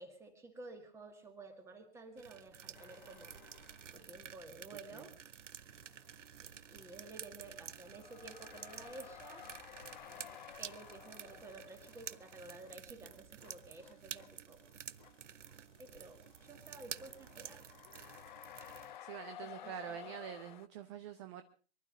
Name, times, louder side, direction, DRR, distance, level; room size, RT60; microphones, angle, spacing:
voice 1, 0.0-3.3 3.9-5.2 6.4-9.5 10.6-14.6 15.8-18.2 19.4-20.1, right 2 dB, 5° right, 6 dB, 2.0 m, -53 dB
sound 1, 2.2-19.0, right 9 dB, 75° right, 0.8 m, -51 dB
sound 2, 2.7-4.3 4.6-20.7, left 11 dB, 40° left, 0.7 m, -55 dB
voice 2, 19.0-21.4, right 10 dB, 25° right, 9 dB, 0.9 m, -46 dB
24.0 x 12.0 x 5.0 m, 0.41 s
hypercardioid pair, 145°, 37 cm